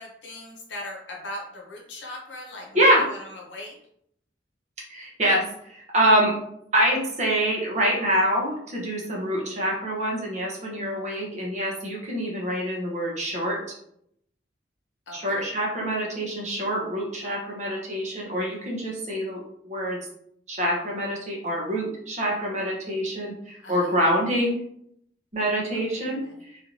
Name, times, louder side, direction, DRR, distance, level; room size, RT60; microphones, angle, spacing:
voice 1, 0.0-3.8 15.1-15.4 23.6-23.9 25.9-26.3, left 1 dB, 75° left, 0 dB, 0.8 m, -39 dB
voice 2, 2.7-3.1 4.9-6.3 6.7-13.8 15.1-20.0 20.5-24.6 25.3-26.2 26.5-26.6, equal, 40° right, -2 dB, 0.9 m, -25 dB
3.3 x 2.6 x 2.9 m, 0.72 s
head